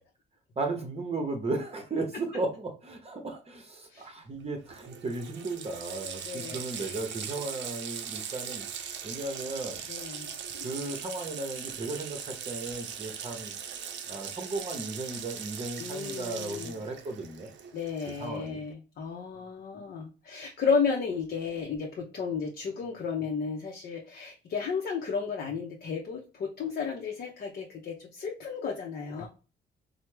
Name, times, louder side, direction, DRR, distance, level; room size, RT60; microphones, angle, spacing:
voice 1, 0.6-8.6 9.0-9.8 10.6-13.5 14.1-17.5 18.2-18.6, right 2 dB, 30° right, 3 dB, 0.7 m, -35 dB
Water tap faucet, 4.4-4.5 4.7-18.5, right 8 dB, 65° right, 0.5 m, -40 dB
voice 2, 6.2-7.0 9.9-10.3 15.8-16.8 17.7-29.3, left 5 dB, 55° left, 0 dB, 0.6 m, -33 dB
3.2 x 2.0 x 3.2 m, 0.35 s
cardioid pair, 90°, 20 cm